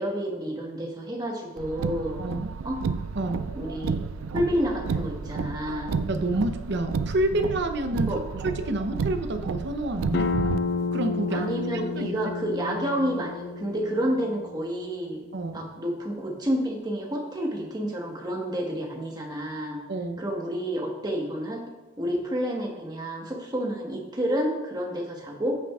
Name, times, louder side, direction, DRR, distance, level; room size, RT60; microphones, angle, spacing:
voice 1, 0.0-2.2 2.6-2.8 3.5-4.0 4.3-6.0 8.1-8.2 11.3-15.2 15.5-19.8 20.2-21.6 22.0-25.6, equal, 20° right, 0 dB, 1.3 m, -29 dB
Car, 1.6-10.6, right 5 dB, 90° right, 0.4 m, -31 dB
voice 2, 2.2-2.5 3.1-3.5 6.1-10.3 10.9-12.2 15.3-15.6 19.9-20.2, right 1 dB, 55° right, 7 dB, 0.7 m, -29 dB
sound 1, 10.1-15.5, left 4 dB, 55° left, 0.4 m, -31 dB
14.0 x 6.0 x 2.4 m, 1.1 s
head